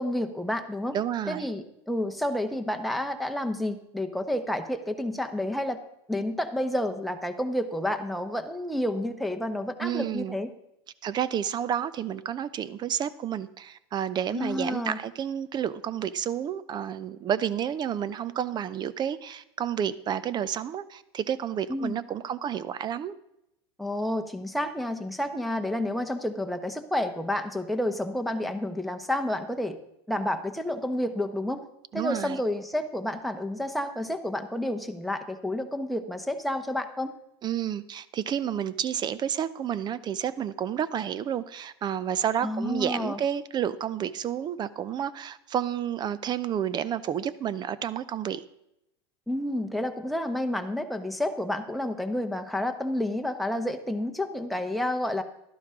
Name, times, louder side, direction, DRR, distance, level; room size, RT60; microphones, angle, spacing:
voice 1, 0.0-1.0 1.3-5.8 6.1-10.5 14.3-15.0 21.7-21.9 23.8-29.8 30.1-31.6 31.9-37.1 42.4-43.2 49.3-55.2, left 1 dB, ahead, 5 dB, 1.0 m, -30 dB
voice 2, 0.9-1.5 9.8-10.4 11.0-23.1 31.9-32.4 37.4-48.4, right 9 dB, 30° right, 18 dB, 0.6 m, -30 dB
12.0 x 11.5 x 3.7 m, 0.82 s
hypercardioid pair, 105°, 14 cm